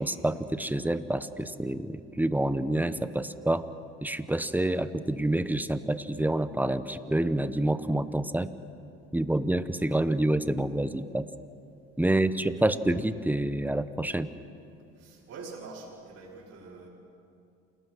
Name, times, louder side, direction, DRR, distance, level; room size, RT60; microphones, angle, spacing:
voice 1, 0.0-3.7 4.0-8.5 9.1-11.3 12.0-14.3, right 1 dB, 5° right, 13 dB, 1.1 m, -27 dB
voice 2, 12.1-12.7 15.0-16.9, right 4 dB, 50° right, -7 dB, 6.4 m, -45 dB
28.5 x 19.0 x 6.3 m, 2.6 s
hypercardioid pair, 75°, 30 cm